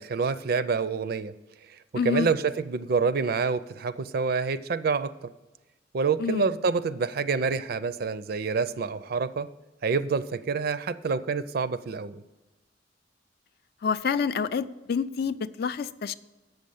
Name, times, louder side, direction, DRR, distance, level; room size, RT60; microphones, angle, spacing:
voice 1, 0.0-1.3 1.7-1.8 2.0-5.1 5.9-9.5 9.8-12.2, right 5 dB, 55° right, 14 dB, 0.4 m, -27 dB
voice 2, 1.9-2.3 6.2-6.5 13.8-16.1, left 6 dB, 55° left, 14 dB, 0.4 m, -28 dB
7.9 x 6.5 x 7.0 m, 1.1 s
head